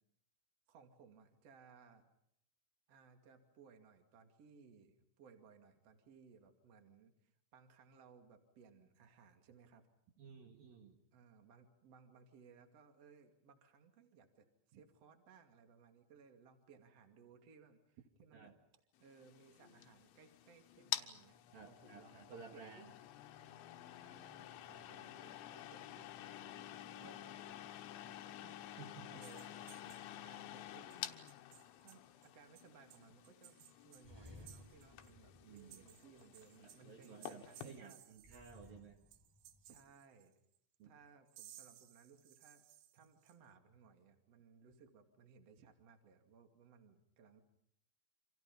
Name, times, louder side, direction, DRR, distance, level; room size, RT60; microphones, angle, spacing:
voice 1, 0.7-2.0 2.9-9.9 11.1-18.5 19.0-22.8 23.9-29.5 30.1-31.2 31.8-33.6 33.8-38.0 39.6-40.3 40.8-42.6 42.9-47.4, right 5 dB, 40° right, 5 dB, 2.9 m, -63 dB
voice 2, 10.2-11.0 14.7-14.8 18.3-18.5 21.5-22.9 28.0-28.1 28.8-29.2 35.4-35.9 36.6-39.0 40.8-40.9, right 6 dB, 60° right, 2 dB, 3.3 m, -55 dB
sound 1, 19.1-37.8, left 12 dB, 80° left, 3.5 m, -50 dB
sound 2, 29.2-30.4 30.9-31.0 31.3-32.3 32.6-35.1 35.4-38.7 39.1-40.6 41.3-43.4, right 12 dB, 75° right, 3.4 m, -61 dB
sound 3, 34.0-36.7 38.2-39.9, left 2 dB, 5° right, 3.4 m, -60 dB
29.0 x 26.5 x 5.5 m, 0.73 s
omnidirectional pair, 5.4 m